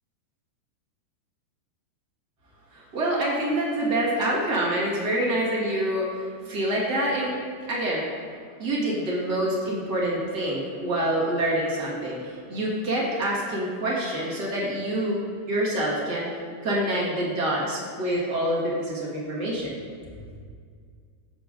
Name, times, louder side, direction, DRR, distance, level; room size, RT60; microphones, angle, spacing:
voice 1, 2.7-7.3 7.7-8.0 8.6-15.2 15.5-16.4 16.6-19.8, right 1 dB, 60° right, -5 dB, 1.0 m, -26 dB
15.0 x 9.0 x 2.6 m, 2.1 s
omnidirectional pair, 4.7 m